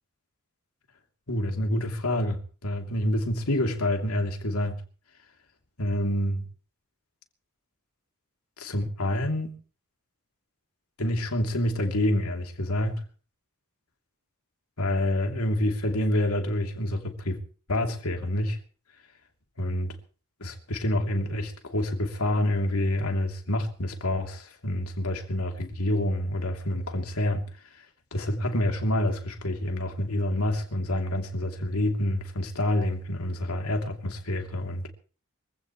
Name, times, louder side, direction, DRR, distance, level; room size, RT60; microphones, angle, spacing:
voice 1, 1.3-4.8 5.8-6.4 8.6-9.6 11.0-13.0 14.8-17.4 17.7-18.6 19.6-19.9 20.4-27.9 28.1-34.9, left 1 dB, 85° left, 3.0 m, -27 dB
24.5 x 16.0 x 3.2 m
head